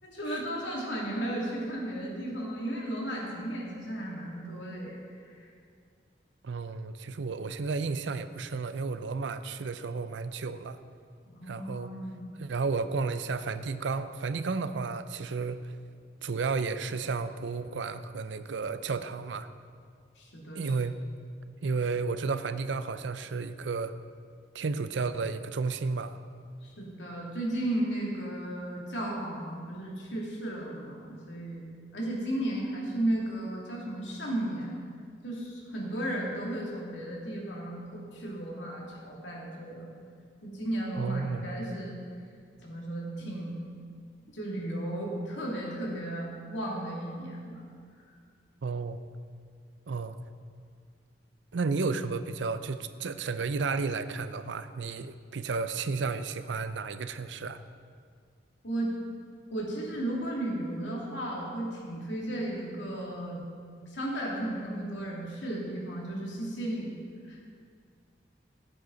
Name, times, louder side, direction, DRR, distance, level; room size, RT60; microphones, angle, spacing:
voice 1, 0.0-5.0 5.3-5.4 11.3-12.2 20.2-20.6 26.6-31.6 31.9-34.8 35.2-39.9 40.4-42.0 42.6-43.5 44.3-47.6 58.6-59.0 59.5-63.4 63.9-66.9 67.3-67.4, right 1 dB, 80° left, -3 dB, 2.5 m, -34 dB
voice 2, 6.4-10.8 11.5-11.9 12.4-15.7 16.2-19.5 20.5-21.0 21.6-23.9 24.5-26.2 41.0-41.5 48.6-49.0 49.9-50.2 51.5-57.6, right 4 dB, 80° right, 11 dB, 0.5 m, -32 dB
15.0 x 8.3 x 3.9 m, 2.1 s
head